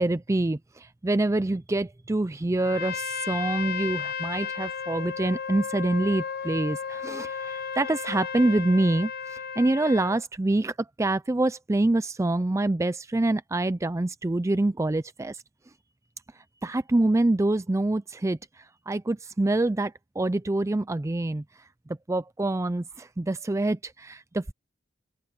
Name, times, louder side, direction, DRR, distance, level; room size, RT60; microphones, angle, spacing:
voice 1, 0.0-15.4 16.6-21.4 22.1-24.5, right 2 dB, 15° right, 0.4 m, -26 dB
Trumpet, 2.6-10.2, left 6 dB, 55° left, 0.9 m, -34 dB
open air
head